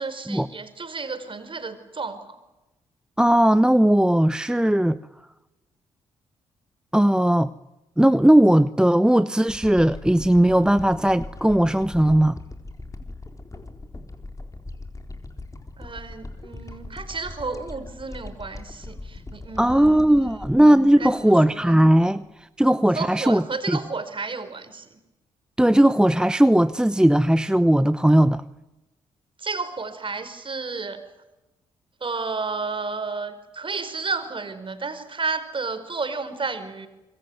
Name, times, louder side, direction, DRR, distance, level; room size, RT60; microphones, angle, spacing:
voice 1, 0.0-2.4 15.8-20.4 21.0-21.8 22.9-25.0 29.4-31.0 32.0-36.9, right 4 dB, 40° right, 5.1 m, -32 dB
voice 2, 3.2-5.0 6.9-7.5 8.0-12.3 19.6-22.3 22.6-23.4 23.7-23.8 25.6-28.4, right 1 dB, 5° right, 0.9 m, -18 dB
sound 1, 9.5-21.8 22.3-22.4, left 2 dB, 25° left, 4.1 m, -40 dB
26.0 x 22.5 x 9.4 m
hypercardioid pair, 45°, 13 cm